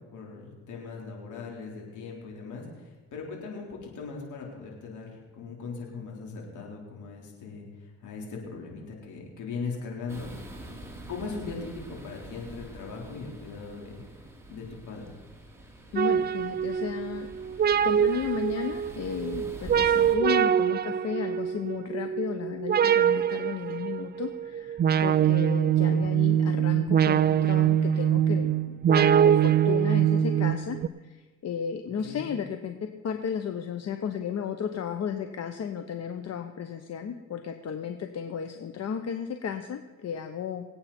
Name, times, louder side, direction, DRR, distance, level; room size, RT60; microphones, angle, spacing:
voice 1, 0.1-10.3 11.1-14.0 14.5-15.1 20.0-20.1 25.5-25.6 32.0-32.2, left 4 dB, 75° left, -1 dB, 4.1 m, -39 dB
sound 1, 10.1-20.2, right 2 dB, 10° right, 2.3 m, -45 dB
voice 2, 15.9-17.3 17.8-32.8 33.0-40.7, left 7 dB, 55° left, 7 dB, 1.0 m, -34 dB
sound 2, 16.0-30.9, right 9 dB, 35° right, 0.4 m, -24 dB
24.5 x 8.7 x 4.4 m, 1.3 s
cardioid pair, 90°, 30 cm